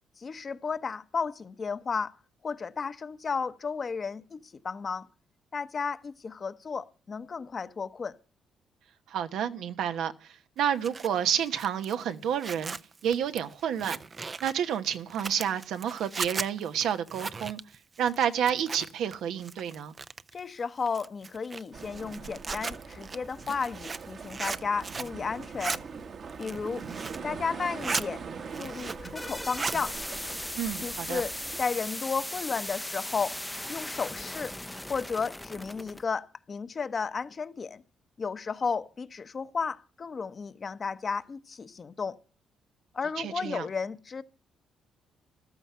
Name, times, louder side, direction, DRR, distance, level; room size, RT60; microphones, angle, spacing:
voice 1, 0.2-2.1 2.4-5.1 5.5-8.1 20.3-25.8 26.4-26.9 27.2-28.2 28.5-30.0 30.8-33.4 33.7-34.5 34.9-37.8 38.2-42.2 42.9-44.2, left 5 dB, 40° left, 1.0 m, -33 dB
voice 2, 9.1-10.1 10.6-12.8 13.0-14.0 14.4-17.6 18.0-19.9 30.6-31.2 43.2-43.7, right 9 dB, 80° right, 1.2 m, -29 dB
Zipper (clothing), 10.6-19.2 19.4-20.4 20.9-25.2 25.4-25.8 26.3-27.3 27.6-28.1 28.4-29.1 29.4-29.8, right 4 dB, 35° right, 0.6 m, -37 dB
sound 1, 21.7-31.6, right 5 dB, 55° right, 1.5 m, -42 dB
sound 2, 28.8-36.0, left 1 dB, 5° left, 0.7 m, -38 dB
14.5 x 13.0 x 5.7 m
cardioid pair, 90°, 0 cm